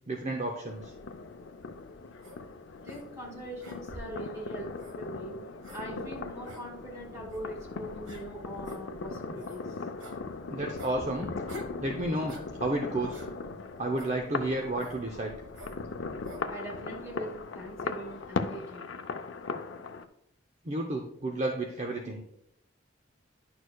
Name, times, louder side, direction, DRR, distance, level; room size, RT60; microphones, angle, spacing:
voice 1, 0.1-0.9 10.5-11.3 11.8-13.2 13.8-15.3 20.6-22.2, right 2 dB, 35° right, 2 dB, 0.6 m, -32 dB
sound 1, 0.7-20.1, left 4 dB, 80° left, 0.5 m, -39 dB
sound 2, 2.2-2.4 2.9-3.0 3.6-4.2 4.8-5.0 5.6-5.8 6.5-6.6 7.3-7.4 8.1-8.2 8.6-8.8 9.4-9.6 10.0-10.2 10.8-11.0 11.5-11.8 12.3-12.5 13.1-13.3 14.0-14.2 14.8-15.0 15.5-15.8 16.2-16.4, equal, 85° right, 1.4 m, -46 dB
voice 2, 2.8-5.4 5.7-9.8 16.5-18.9, right 1 dB, 15° right, -2 dB, 2.5 m, -42 dB
11.0 x 6.4 x 2.3 m, 0.78 s
head